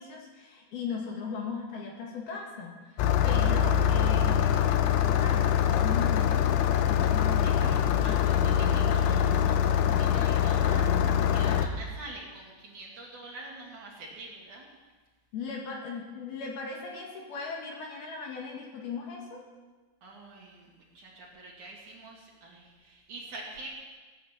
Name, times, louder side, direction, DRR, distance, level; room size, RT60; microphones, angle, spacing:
voice 1, 0.0-8.4 8.8-8.9 11.4-11.7 15.3-19.4, left 5 dB, 60° left, 0 dB, 3.4 m, -38 dB
Engine starting, 3.0-11.7, left 9 dB, 90° left, 3.2 m, -24 dB
voice 2, 7.4-14.7 20.0-23.7, right 2 dB, 50° right, -3 dB, 3.4 m, -46 dB
16.5 x 10.5 x 7.4 m, 1.3 s
omnidirectional pair, 5.3 m